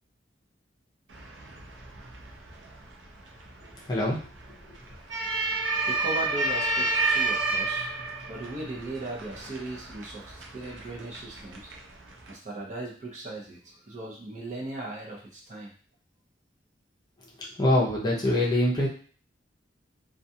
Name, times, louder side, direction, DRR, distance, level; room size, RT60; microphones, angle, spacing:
sound 1, 1.1-12.3, right 3 dB, 85° right, 0.6 m, -31 dB
voice 1, 3.8-4.2 17.6-18.9, left 1 dB, 25° left, -4 dB, 0.6 m, -24 dB
voice 2, 5.9-7.9 8.3-11.7 12.3-15.7, right 2 dB, 40° right, -3 dB, 0.7 m, -38 dB
2.3 x 2.3 x 2.7 m, 0.42 s
head